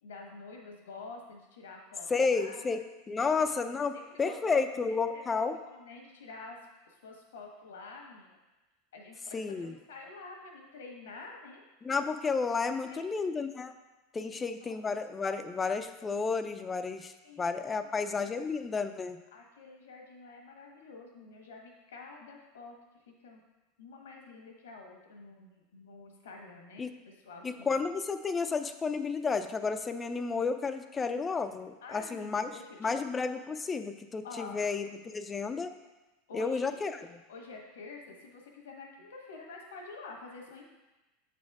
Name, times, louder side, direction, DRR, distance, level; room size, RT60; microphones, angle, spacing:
voice 1, 0.0-2.6 3.2-3.5 3.8-5.2 5.5-6.6 6.8-8.4 8.9-11.6 12.9-13.1 14.2-15.0 17.2-17.9 18.2-18.3 19.3-22.8 23.1-23.4 23.8-27.7 31.8-33.0 34.2-34.6 36.3-36.8 37.3-40.6, left 3 dB, 90° left, 1 dB, 1.4 m, -48 dB
voice 2, 2.1-2.8 3.1-5.6 9.3-9.8 11.8-13.7 14.1-17.1 17.4-19.2 26.8-26.9 27.4-32.5 32.8-35.7 36.3-37.2, left 4 dB, 20° left, 9 dB, 0.5 m, -31 dB
7.2 x 4.2 x 4.8 m, 1.1 s
hypercardioid pair, 110°, 0 cm